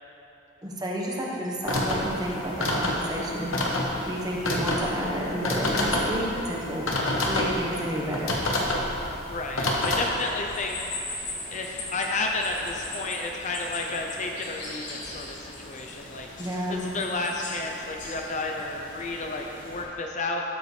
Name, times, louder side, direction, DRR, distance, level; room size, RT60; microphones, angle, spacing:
voice 1, 0.6-6.9 7.2-8.4 16.4-16.9, equal, 20° right, -3 dB, 1.2 m, -31 dB
sound 1, 1.6-10.0, left 1 dB, 75° left, 1.2 m, -28 dB
voice 2, 9.3-10.9 11.5-16.3 16.7-20.4, left 2 dB, 35° left, 1 dB, 0.5 m, -31 dB
sound 2, 9.7-19.8, left 2 dB, 60° left, 1.6 m, -40 dB
12.5 x 7.8 x 3.3 m, 3.0 s
head